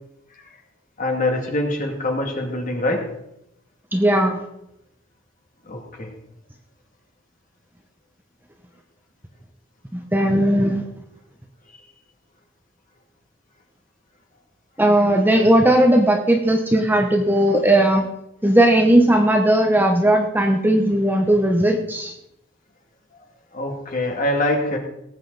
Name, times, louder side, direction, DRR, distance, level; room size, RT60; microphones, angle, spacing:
voice 1, 1.0-3.1 5.7-6.1 23.5-24.8, left 1 dB, 40° left, 1 dB, 2.3 m, -24 dB
voice 2, 3.9-4.5 9.9-10.8 14.8-18.1 18.4-22.1, right 1 dB, 10° right, 3 dB, 0.9 m, -17 dB
18.5 x 8.2 x 4.0 m, 0.82 s
head